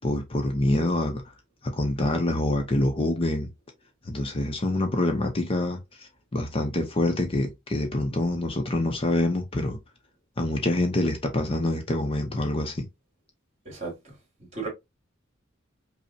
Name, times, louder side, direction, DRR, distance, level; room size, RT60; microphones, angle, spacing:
voice 1, 0.0-1.2 1.6-3.5 4.1-9.8 10.4-12.9, left 1 dB, 30° left, 0.6 m, -26 dB
voice 2, 13.7-14.7, right 4 dB, 35° right, 2.0 m, -36 dB
5.2 x 2.1 x 2.6 m
head